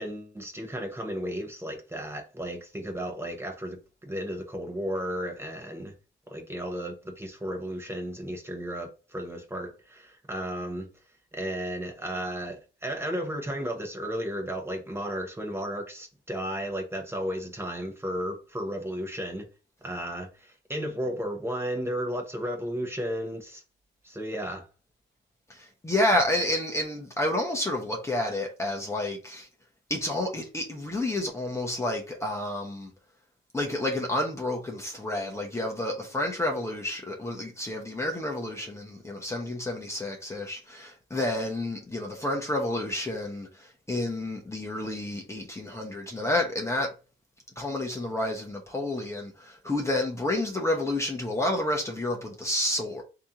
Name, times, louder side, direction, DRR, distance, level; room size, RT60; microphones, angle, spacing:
voice 1, 0.0-5.9 6.3-10.9 11.3-19.5 19.8-23.6 24.0-24.7, equal, 10° right, 1.0 m, -34 dB
voice 2, 25.5-29.5 29.9-32.9 33.5-46.9 47.6-53.0, left 1 dB, 15° left, 0.9 m, -30 dB
3.3 x 2.8 x 3.7 m
cardioid pair, 90°, 20 cm